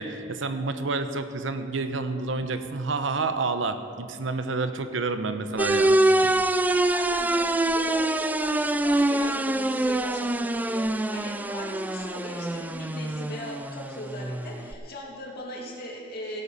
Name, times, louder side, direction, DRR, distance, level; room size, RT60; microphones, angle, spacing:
voice 1, 0.0-6.4, right 3 dB, 90° right, 9 dB, 0.8 m, -29 dB
sound 1, 5.6-14.7, right 1 dB, 10° right, 0.3 m, -25 dB
voice 2, 6.7-16.4, left 1 dB, 55° left, -2 dB, 2.6 m, -38 dB
16.0 x 8.6 x 5.4 m, 2.3 s
head